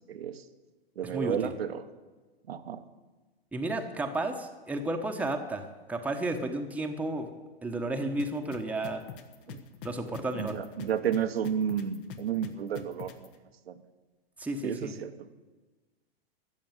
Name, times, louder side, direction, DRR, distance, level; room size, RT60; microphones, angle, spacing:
voice 1, 0.1-0.4 1.0-1.8 2.5-2.8 9.5-9.6 10.3-13.3 13.7-13.8 14.6-15.3, right 8 dB, 75° right, 10 dB, 1.2 m, -32 dB
voice 2, 1.0-1.5 3.5-5.6 5.9-7.3 7.6-9.0 9.8-10.6 14.4-14.9, right 2 dB, 5° right, 4 dB, 1.1 m, -32 dB
sound 1, 8.2-13.3, left 8 dB, 60° left, 1.5 m, -43 dB
14.0 x 6.9 x 9.0 m, 1.3 s
hypercardioid pair, 115°, 31 cm